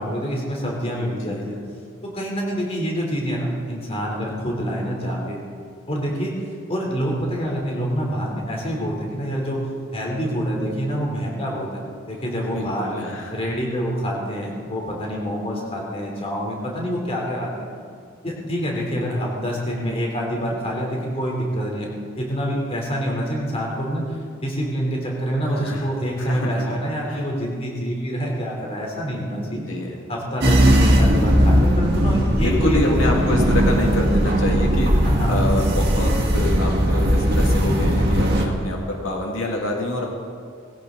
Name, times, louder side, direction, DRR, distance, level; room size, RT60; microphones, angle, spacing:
voice 1, 0.0-1.6 2.0-5.4 5.9-6.3 6.7-9.6 9.9-11.7 12.1-12.9 13.3-17.5 18.2-21.9 22.2-24.0 24.4-29.6 30.1-33.1 35.0-35.5, equal, 30° left, -2 dB, 3.6 m, -26 dB
voice 2, 1.0-1.4 12.4-13.3 25.4-25.9 26.2-26.8 27.1-27.3 29.5-29.9 32.4-40.1, left 1 dB, 80° left, 0 dB, 2.2 m, -26 dB
sound 1, 30.4-38.5, equal, 55° right, 2.1 m, -18 dB
20.0 x 16.5 x 4.0 m, 2.2 s
head